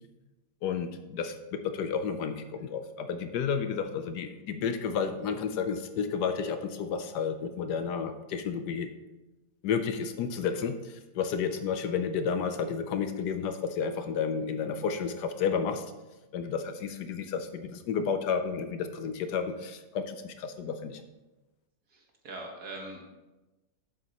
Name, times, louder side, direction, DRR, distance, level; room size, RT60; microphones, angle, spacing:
voice 1, 0.6-8.9 9.6-15.8 16.3-21.0, left 6 dB, 70° left, 8 dB, 1.2 m, -31 dB
voice 2, 21.9-23.1, right 2 dB, 60° right, 1 dB, 1.9 m, -42 dB
11.0 x 7.6 x 2.9 m, 1.1 s
omnidirectional pair, 1.9 m